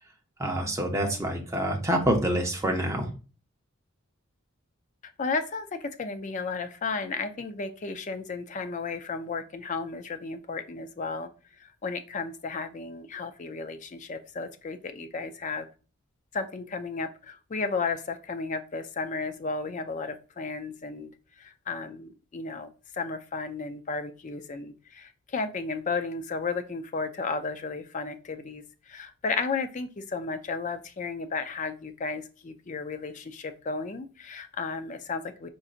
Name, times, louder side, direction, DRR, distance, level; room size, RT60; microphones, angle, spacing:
voice 1, 0.4-3.1, right 1 dB, 15° right, 1 dB, 0.7 m, -26 dB
voice 2, 5.0-11.3 11.6-15.7 16.3-21.1 21.4-35.5, left 4 dB, 35° left, 9 dB, 0.4 m, -34 dB
4.9 x 3.9 x 2.4 m, 0.36 s
head